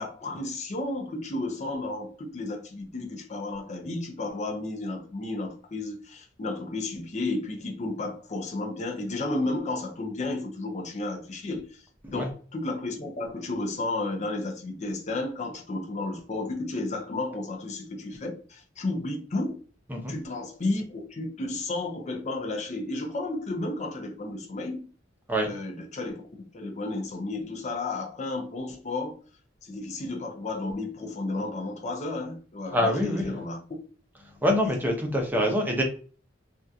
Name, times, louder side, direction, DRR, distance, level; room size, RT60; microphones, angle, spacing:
voice 1, 0.0-11.8 12.1-19.6 20.1-24.9 25.4-29.2 29.6-33.6, left 2 dB, 35° left, 0.5 m, -32 dB
voice 2, 32.7-33.4 34.4-35.8, equal, 10° right, 0.7 m, -25 dB
3.4 x 2.4 x 2.7 m
head